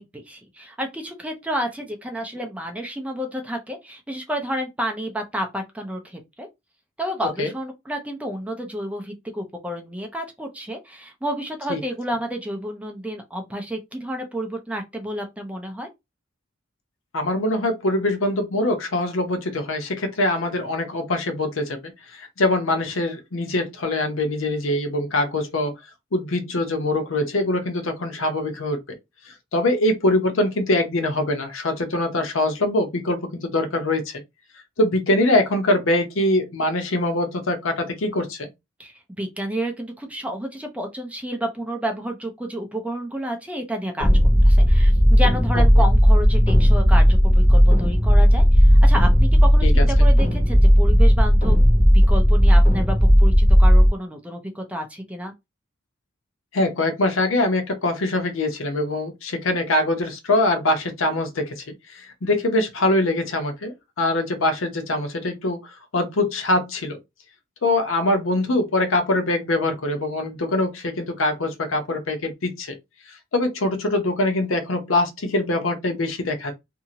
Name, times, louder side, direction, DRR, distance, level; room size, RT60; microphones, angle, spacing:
voice 1, 0.0-6.5 7.0-15.9 38.8-44.1 44.4-51.6 51.9-55.3, equal, 5° right, 0.5 m, -30 dB
voice 2, 17.1-25.7 26.1-29.0 29.5-34.2 34.8-38.5 49.6-49.8 56.5-65.6 65.9-67.0 67.6-72.7 73.3-76.5, left 1 dB, 80° left, 0.7 m, -23 dB
sound 1, 44.0-53.9, equal, 25° left, 0.9 m, -14 dB
2.7 x 2.5 x 2.8 m
head